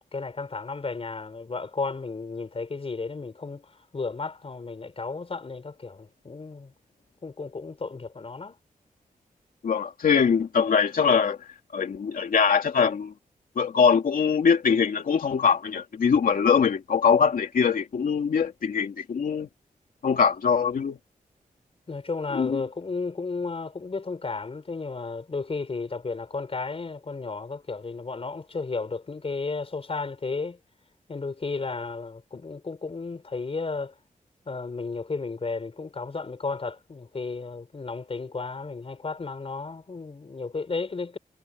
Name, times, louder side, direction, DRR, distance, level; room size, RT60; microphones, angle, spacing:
voice 1, 0.0-6.7 7.2-8.6 21.9-30.6 31.1-33.9 34.4-41.2, left 4 dB, 40° left, 5.0 m, -33 dB
voice 2, 9.6-11.4 11.7-13.1 13.6-19.5 20.0-21.0 22.3-22.6, left 6 dB, 80° left, 2.6 m, -22 dB
wide cardioid pair, 95°, 14 cm